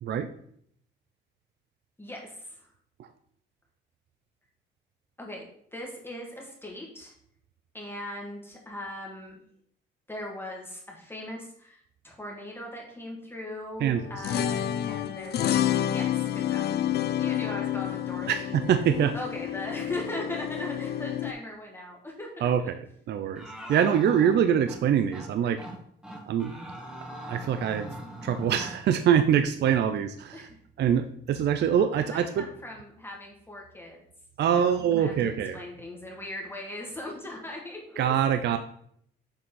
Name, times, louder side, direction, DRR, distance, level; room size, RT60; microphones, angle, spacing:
voice 1, 2.0-2.7 5.2-5.4 5.7-7.1 7.7-9.4 10.1-15.6 15.9-16.8 17.2-18.6 19.1-22.5 25.4-25.6 30.3-30.6 32.0-34.0 34.4-38.0, left 1 dB, 10° left, -1 dB, 1.7 m, -39 dB
sound 1, 14.0-21.3, left 11 dB, 55° left, 0.4 m, -29 dB
voice 2, 18.3-19.1 22.4-25.6 26.3-26.5 27.3-28.0 28.2-30.5 30.8-32.4 34.4-35.6 38.0-38.6, right 8 dB, 60° right, 9 dB, 0.5 m, -24 dB
sound 2, 23.4-24.8 25.1-25.3 25.6-25.8 26.0-28.8, right 1 dB, 5° right, 1.5 m, -41 dB
6.9 x 4.0 x 3.7 m, 0.66 s
cardioid pair, 90°, 20 cm